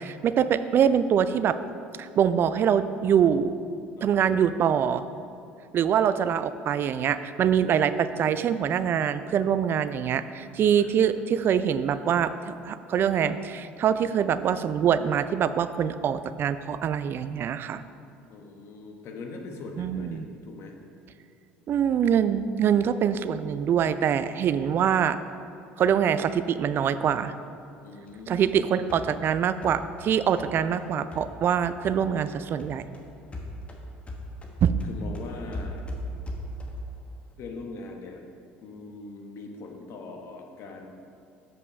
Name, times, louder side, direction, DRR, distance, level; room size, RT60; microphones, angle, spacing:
voice 1, 0.0-1.6 2.0-3.5 4.0-5.0 5.7-17.8 19.8-20.2 21.7-25.2 25.8-27.3 28.3-32.8 34.6-34.7, right 8 dB, 45° right, 13 dB, 0.4 m, -24 dB
voice 2, 4.0-4.3 8.1-8.7 10.7-11.2 18.3-20.7 27.8-29.1 34.9-35.8 37.4-38.2 38.6-40.9, left 3 dB, 55° left, 2 dB, 1.2 m, -41 dB
sound 1, 28.1-32.3 32.6-37.0, equal, 25° left, 1.3 m, -39 dB
7.2 x 5.4 x 5.2 m, 2.5 s
hypercardioid pair, 65°, 5 cm